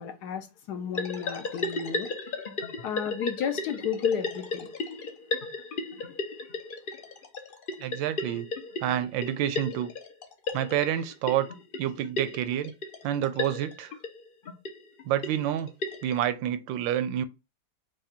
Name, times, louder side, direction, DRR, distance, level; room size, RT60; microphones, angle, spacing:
voice 1, 0.0-2.1 2.8-4.7, left 7 dB, 65° left, 1.2 m, -32 dB
sound 1, 0.9-16.2, left 3 dB, 85° left, 0.4 m, -35 dB
voice 2, 7.8-8.5 8.8-9.9 10.5-11.5 11.8-12.7 13.0-13.9 15.1-15.7 16.0-17.2, right 11 dB, 80° right, 1.3 m, -28 dB
4.9 x 2.3 x 4.3 m
omnidirectional pair, 2.0 m